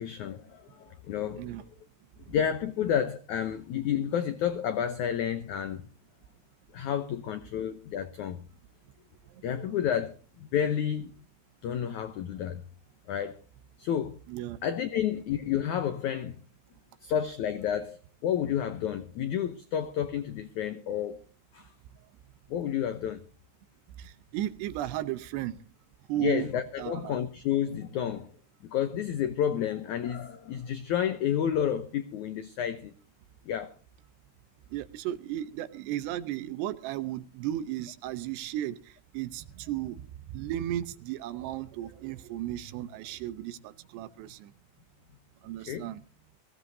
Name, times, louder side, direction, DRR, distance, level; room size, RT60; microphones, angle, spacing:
voice 1, 0.0-1.5 2.3-5.8 6.7-8.4 9.4-11.1 11.6-12.6 13.1-13.4 13.8-14.2 14.6-16.4 17.0-21.2 21.5-21.7 22.5-23.2 26.2-28.3 28.6-32.9 33.5-33.7 45.7-45.9, left 9 dB, 85° left, 1.7 m, -30 dB
voice 2, 24.0-25.6 26.1-26.5 26.8-27.2 34.7-38.8 39.1-40.0 40.3-44.5 45.4-46.0, right 13 dB, 90° right, 3.0 m, -35 dB
22.5 x 16.0 x 2.7 m
omnidirectional pair, 4.7 m